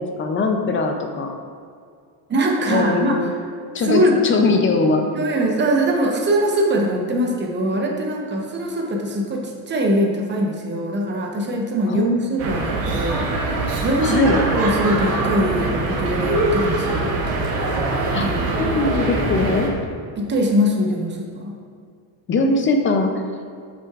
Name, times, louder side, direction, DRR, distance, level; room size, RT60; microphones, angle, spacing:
voice 1, 0.0-1.3 2.7-3.3 3.7-5.1 11.9-12.5 14.0-14.4 18.1-18.3 18.6-19.7 22.3-23.2, left 3 dB, 30° left, 5 dB, 0.5 m, -21 dB
voice 2, 2.3-3.2 3.8-4.2 5.1-17.1 18.2-18.5 20.2-21.5, equal, 25° right, 0 dB, 0.9 m, -22 dB
sound 1, 12.4-19.7, right 2 dB, 75° right, 1.6 m, -23 dB
8.0 x 5.9 x 2.4 m, 2.2 s
cardioid pair, 145°, 44 cm